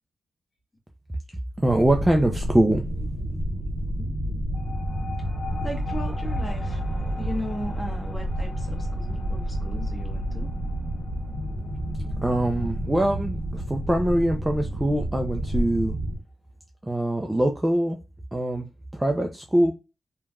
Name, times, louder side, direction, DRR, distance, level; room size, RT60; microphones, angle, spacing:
voice 1, 1.6-2.8 12.2-16.0 16.8-18.0 18.3-18.7 18.9-19.7, right 1 dB, 10° right, 0.4 m, -23 dB
sound 1, 1.6-16.2, right 1 dB, 60° right, 0.6 m, -30 dB
sound 2, 4.5-15.5, left 6 dB, 40° left, 1.1 m, -44 dB
voice 2, 5.6-6.8 7.2-10.5, left 1 dB, 15° left, 1.0 m, -36 dB
3.2 x 2.2 x 2.3 m
wide cardioid pair, 135°, 0 cm